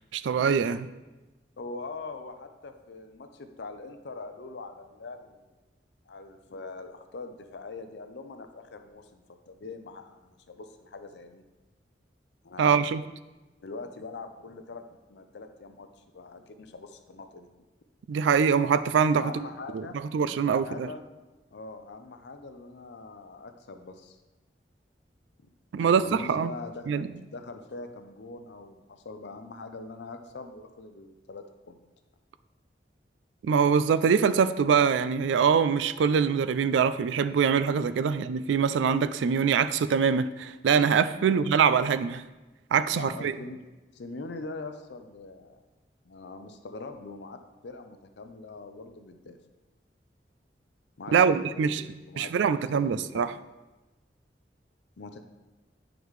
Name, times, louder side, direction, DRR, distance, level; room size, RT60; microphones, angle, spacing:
voice 1, 0.1-0.9 12.6-13.0 18.1-19.4 19.7-19.8 20.1-20.9 25.7-26.5 26.9-27.1 33.4-42.2 42.7-43.3 51.1-51.8 52.2-53.3, right 6 dB, 90° right, 13 dB, 0.3 m, -24 dB
voice 2, 1.6-5.5 6.1-11.4 12.4-12.8 13.6-14.8 15.1-15.9 16.1-17.5 19.1-20.0 20.3-21.0 21.5-24.2 25.7-31.8 41.2-41.4 42.9-43.6 43.9-45.6 46.0-49.4 51.0-53.2 55.0-55.2, left 3 dB, 75° left, 7 dB, 0.5 m, -43 dB
9.2 x 5.0 x 3.2 m, 1.1 s
head